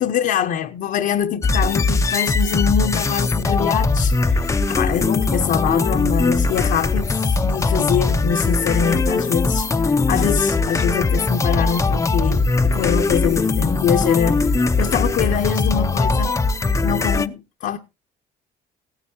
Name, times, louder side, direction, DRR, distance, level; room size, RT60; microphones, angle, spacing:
voice 1, 0.0-16.4 16.8-17.8, left 9 dB, 65° left, 0.9 m, -24 dB
sound 1, 1.4-17.3, left 3 dB, 15° left, 0.6 m, -20 dB
16.5 x 9.8 x 2.8 m
cardioid pair, 110°, 17 cm